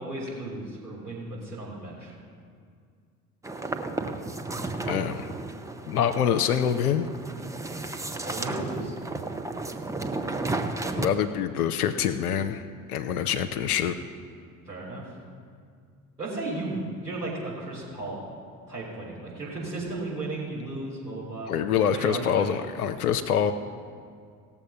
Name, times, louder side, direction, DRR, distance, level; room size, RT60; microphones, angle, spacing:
voice 1, 0.0-2.1 8.2-9.0 14.7-15.1 16.2-18.2 18.7-21.5 21.9-22.5, right 2 dB, 85° right, -8 dB, 3.8 m, -35 dB
sound 1, 3.4-11.1, right 2 dB, 5° right, 0.6 m, -33 dB
voice 2, 4.8-5.3 5.9-7.1 10.8-12.6 12.9-13.9 21.5-23.5, left 8 dB, 75° left, 7 dB, 0.6 m, -25 dB
17.0 x 7.2 x 5.5 m, 2.2 s
figure-of-eight pair, 60°, 45 cm